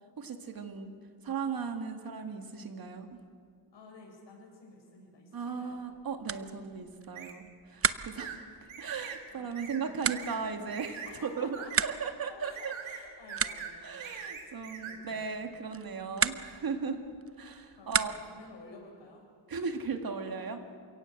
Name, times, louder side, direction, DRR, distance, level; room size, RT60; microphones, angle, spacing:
voice 1, 0.2-0.9 1.2-3.2 5.3-12.7 13.8-17.0 17.4-18.1 19.5-20.6, right 5 dB, 50° right, 5 dB, 2.2 m, -37 dB
voice 2, 3.7-5.8 8.4-8.6 9.3-10.2 11.0-11.9 12.3-13.9 14.4-14.5 14.8-16.3 17.7-19.3, left 3 dB, 65° left, 1 dB, 7.1 m, -53 dB
sound 1, 5.7-18.5, right 7 dB, 30° right, 0.7 m, -37 dB
sound 2, 7.2-7.4 8.2-8.4 8.7-9.2 9.6-9.8 10.1-10.4 10.7-11.1 11.5-11.9 12.4-13.0 13.3-13.7 14.0-15.0, right 7 dB, 85° right, 3.1 m, -42 dB
28.5 x 17.0 x 7.9 m, 2.1 s
cardioid pair, 120°, 46 cm